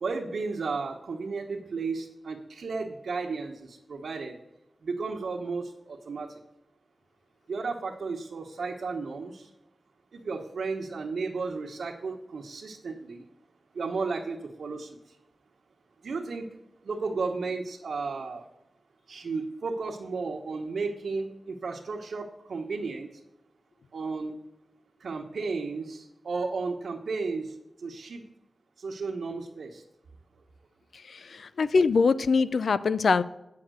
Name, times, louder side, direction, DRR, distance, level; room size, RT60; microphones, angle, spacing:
voice 1, 0.0-4.4 4.8-6.4 7.5-9.5 10.1-13.2 13.7-15.2 16.0-16.5 16.8-18.5 19.1-23.2 23.9-24.3 25.0-28.2 28.8-29.8, right 4 dB, 85° right, -2 dB, 1.0 m, -34 dB
voice 2, 30.9-33.2, left 4 dB, 75° left, 16 dB, 0.4 m, -24 dB
9.2 x 5.8 x 7.6 m, 0.91 s
wide cardioid pair, 75°, 0 cm